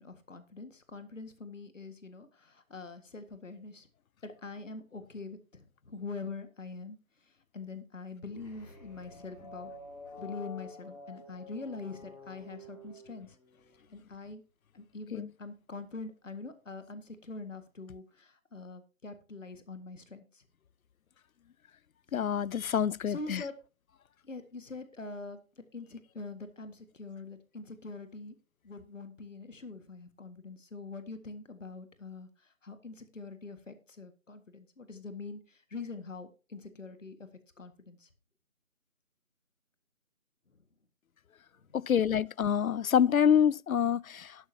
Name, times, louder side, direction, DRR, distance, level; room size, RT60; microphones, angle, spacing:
voice 1, 0.0-3.9 4.2-7.0 7.5-9.7 10.2-13.3 13.9-14.4 14.7-20.2 23.1-23.5 24.2-25.4 25.7-28.3 28.6-32.3 32.6-35.4 35.7-37.2 37.6-38.1, left 3 dB, 65° left, 1.8 m, -44 dB
sound 1, 8.3-13.8, left 3 dB, 30° left, 4.2 m, -49 dB
voice 2, 22.1-23.4 41.7-44.4, left 8 dB, 90° left, 0.5 m, -26 dB
11.5 x 11.5 x 2.8 m
figure-of-eight pair, 170°, 41 cm